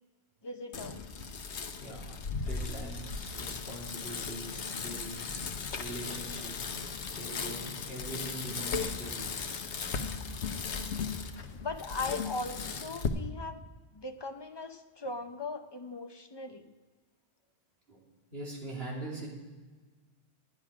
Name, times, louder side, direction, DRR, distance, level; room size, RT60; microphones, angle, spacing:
voice 1, 0.4-1.0 11.5-13.6 13.9-16.7, left 3 dB, 30° left, 7 dB, 0.6 m, -39 dB
Bicycle, 0.7-13.1, left 5 dB, 85° left, 1.1 m, -37 dB
voice 2, 1.8-6.7 7.1-9.4 17.9-18.1 18.3-19.3, right 1 dB, 65° right, -3 dB, 3.2 m, -43 dB
11.5 x 9.7 x 4.9 m, 1.3 s
omnidirectional pair, 1.1 m